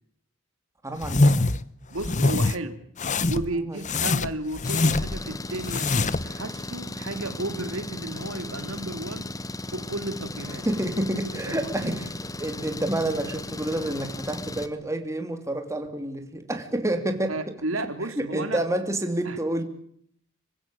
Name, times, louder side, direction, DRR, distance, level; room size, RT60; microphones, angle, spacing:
voice 1, 0.8-1.6 3.5-4.1 10.6-17.5 18.2-19.6, right 1 dB, 15° right, 6 dB, 2.8 m, -29 dB
sound 1, 1.0-1.6 2.0-2.6 3.0-3.5 3.8-5.2 5.6-6.3, left 2 dB, 35° left, 0.9 m, -23 dB
voice 2, 1.9-2.8 3.3-9.3 9.7-10.7 11.5-11.9 17.3-18.6 19.2-19.4, right 2 dB, 75° right, 9 dB, 2.6 m, -33 dB
Engine, 4.6-14.7, left 2 dB, 15° left, 1.3 m, -36 dB
27.0 x 16.0 x 9.0 m, 0.66 s
head